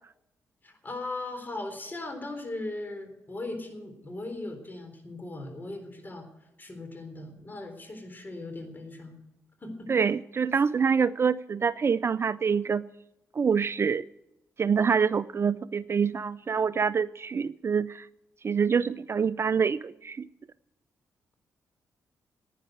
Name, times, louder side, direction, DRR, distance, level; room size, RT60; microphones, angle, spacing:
voice 1, 0.6-9.2 9.6-9.9, left 2 dB, 30° left, 6 dB, 3.8 m, -38 dB
voice 2, 9.9-12.8 13.3-14.1 14.6-18.1 18.4-20.3, right 6 dB, 40° right, 17 dB, 0.4 m, -26 dB
11.5 x 9.4 x 9.3 m, 0.90 s
supercardioid pair, 60°, 6 cm